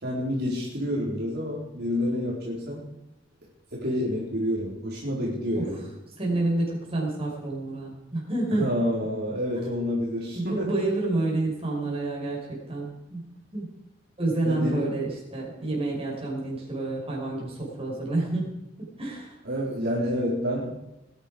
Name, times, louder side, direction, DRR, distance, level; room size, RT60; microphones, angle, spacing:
voice 1, 0.0-2.9 3.7-5.9 8.5-10.7 14.4-15.0 19.4-20.7, equal, 55° right, -5 dB, 4.0 m, -28 dB
voice 2, 6.2-8.7 10.3-13.3 13.5-13.7 14.2-18.5 19.0-19.3, right 2 dB, 30° right, -3 dB, 5.3 m, -29 dB
20.5 x 10.5 x 5.0 m, 0.92 s
head